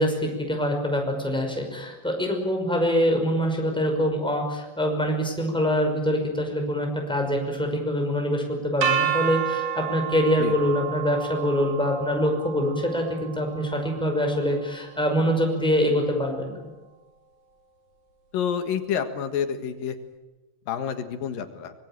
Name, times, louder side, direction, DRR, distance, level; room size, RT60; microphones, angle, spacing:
voice 1, 0.0-16.6, equal, ahead, 2 dB, 5.4 m, -24 dB
sound 1, 8.8-14.7, right 9 dB, 65° right, 4.8 m, -31 dB
voice 2, 18.3-20.0 20.7-21.7, left 8 dB, 75° left, 8 dB, 3.3 m, -28 dB
25.0 x 22.0 x 9.1 m, 1.1 s
omnidirectional pair, 4.1 m